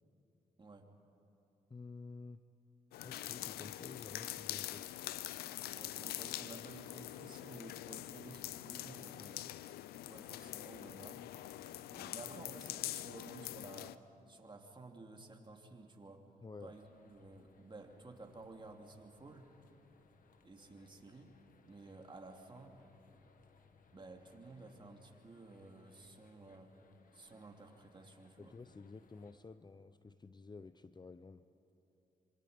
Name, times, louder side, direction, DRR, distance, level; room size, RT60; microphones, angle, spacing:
voice 1, 0.6-0.9 5.7-9.5 10.1-11.2 11.9-14.0 14.3-16.3 16.6-19.5 20.4-21.3 21.6-22.8 23.9-26.7 27.1-28.6, right 3 dB, 30° right, 2 dB, 2.9 m, -54 dB
voice 2, 1.7-2.4 3.0-4.9 16.4-16.8 28.4-31.5, left 4 dB, 30° left, 12 dB, 0.7 m, -51 dB
sound 1, 2.9-14.0, left 14 dB, 90° left, 0.5 m, -44 dB
sound 2, 16.7-29.4, left 4 dB, 60° left, 1.7 m, -67 dB
26.0 x 25.5 x 5.3 m, 2.9 s
supercardioid pair, 60°, 16 cm